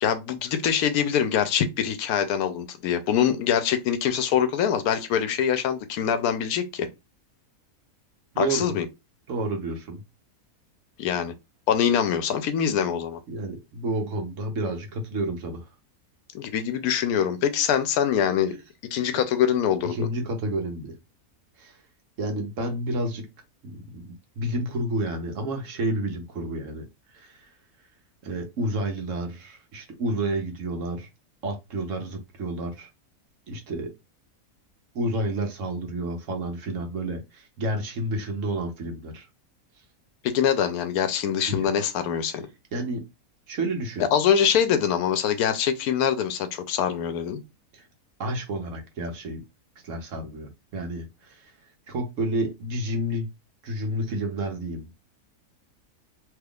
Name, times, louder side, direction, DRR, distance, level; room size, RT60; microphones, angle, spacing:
voice 1, 0.0-6.9 8.4-8.9 11.0-11.3 11.7-13.2 16.3-18.6 18.9-20.1 40.2-42.5 44.1-47.4, left 8 dB, 80° left, 1.1 m, -24 dB
voice 2, 8.3-8.8 9.3-10.0 13.3-15.6 19.9-21.0 21.6-21.8 22.2-23.3 23.6-26.8 27.1-27.5 28.2-31.1 31.4-32.9 33.5-33.9 34.9-39.3 41.5-41.7 42.7-43.0 43.5-44.1 47.7-47.9 48.2-49.4 49.8-51.5 51.9-53.3 53.6-54.9, right 1 dB, 60° right, 1.1 m, -30 dB
3.5 x 3.0 x 2.3 m
omnidirectional pair, 1.5 m